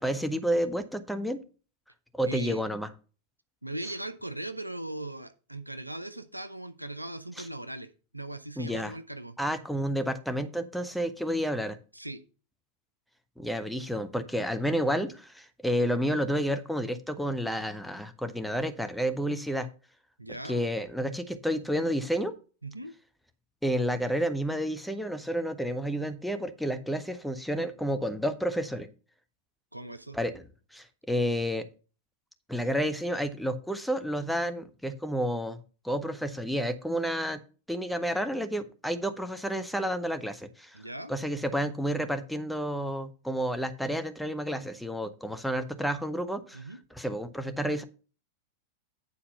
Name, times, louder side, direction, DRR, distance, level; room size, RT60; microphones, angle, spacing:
voice 1, 0.0-1.4 2.1-2.9 7.4-7.5 8.6-8.9 9.4-11.8 13.4-19.7 20.4-22.3 23.6-28.9 30.1-30.4 30.7-31.7 32.5-35.6 35.8-37.4 37.7-40.8 41.1-46.6 46.9-47.8, equal, ahead, 9 dB, 0.8 m, -30 dB
voice 2, 2.3-2.6 3.6-9.4 11.9-12.2 20.2-20.6 22.6-22.9 29.7-30.2 40.7-41.1 46.5-46.8, right 1 dB, 85° right, 12 dB, 0.6 m, -39 dB
9.5 x 4.2 x 5.4 m, 0.36 s
figure-of-eight pair, 90°, 0 cm